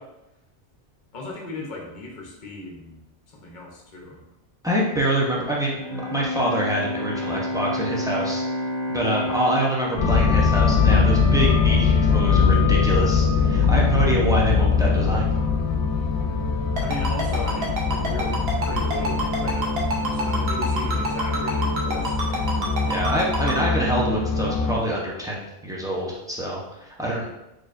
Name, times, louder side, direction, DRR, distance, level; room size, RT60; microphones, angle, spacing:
voice 1, 1.1-3.0 3.3-4.3 12.5-12.6 13.4-13.7 16.8-22.7 23.0-23.3, left 2 dB, 50° left, -1 dB, 0.9 m, -37 dB
voice 2, 4.6-8.4 8.9-15.3 22.9-27.3, right 1 dB, 5° right, -4 dB, 0.5 m, -25 dB
Bowed string instrument, 5.7-11.7, equal, 30° left, 1.4 m, -31 dB
sound 1, 10.0-24.8, left 5 dB, 80° left, 0.9 m, -22 dB
Ringtone, 16.8-23.5, right 1 dB, 65° right, 1.0 m, -27 dB
4.4 x 3.1 x 2.5 m, 0.91 s
omnidirectional pair, 1.2 m